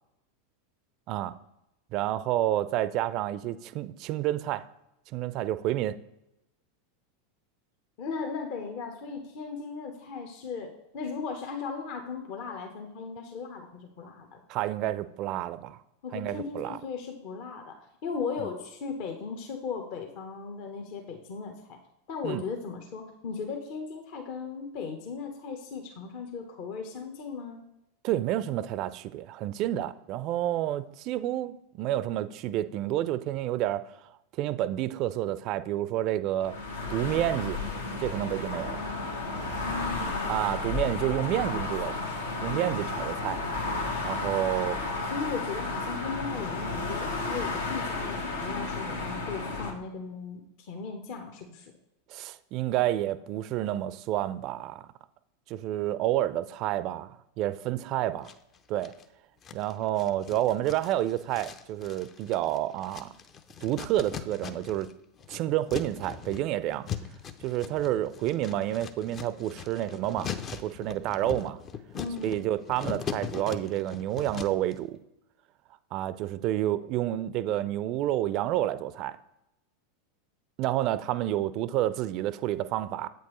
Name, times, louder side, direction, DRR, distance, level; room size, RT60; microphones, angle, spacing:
voice 1, 1.9-4.6 5.1-6.0 14.5-15.8 16.1-16.8 18.4-18.5 22.2-22.4 28.0-33.9 34.4-36.5 36.9-37.6 38.0-38.8 40.3-42.0 42.4-43.4 44.0-44.8 52.1-54.9 55.5-58.3 58.7-58.9 59.5-63.1 63.6-64.9 65.3-66.9 67.4-71.6 72.2-75.0 75.9-79.2 80.6-83.1, right 13 dB, 45° right, 0.4 m, -29 dB
voice 2, 8.0-14.4 16.0-21.8 22.1-27.6 39.6-40.5 45.1-51.7 71.9-72.4, left 5 dB, 50° left, 0.9 m, -37 dB
sound 1, 36.4-49.7, left 3 dB, 80° left, 1.0 m, -33 dB
sound 2, 58.2-59.0 59.4-64.9 65.2-74.7, left 8 dB, 35° left, 0.5 m, -40 dB
8.0 x 4.5 x 3.1 m
figure-of-eight pair, 90°, 0 cm